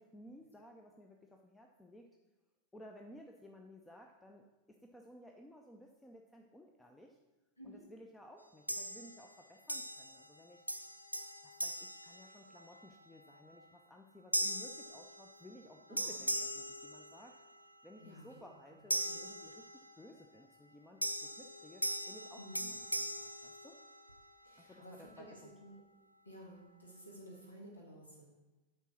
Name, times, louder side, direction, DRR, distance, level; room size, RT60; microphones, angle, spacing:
voice 1, 0.0-2.1 2.7-7.2 7.6-10.6 11.4-17.4 17.8-22.4 22.7-23.8 24.6-25.5, left 1 dB, 10° left, 2 dB, 0.6 m, -57 dB
sound 1, 8.7-9.3 9.7-10.4 10.7-12.8 13.3-13.6 14.3-15.7 16.0-17.6 18.9-20.1 21.0-24.3, right 1 dB, 90° right, 0.4 m, -40 dB
voice 2, 18.7-19.2 22.4-22.7 24.4-25.8 26.2-28.3, equal, 80° left, -2 dB, 1.8 m, -53 dB
9.1 x 3.8 x 6.1 m, 1.1 s
figure-of-eight pair, 90°, 0 cm